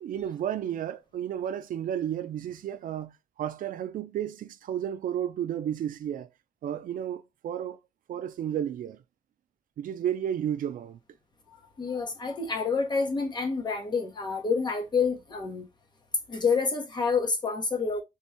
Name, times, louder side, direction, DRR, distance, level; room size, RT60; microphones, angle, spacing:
voice 1, 0.0-6.3 6.6-7.8 8.1-9.0 9.8-11.0, right 10 dB, 85° right, 0.4 m, -32 dB
voice 2, 11.8-15.7 16.3-18.0, left 5 dB, 30° left, 0.8 m, -28 dB
3.5 x 2.2 x 4.1 m
wide cardioid pair, 160°, 14 cm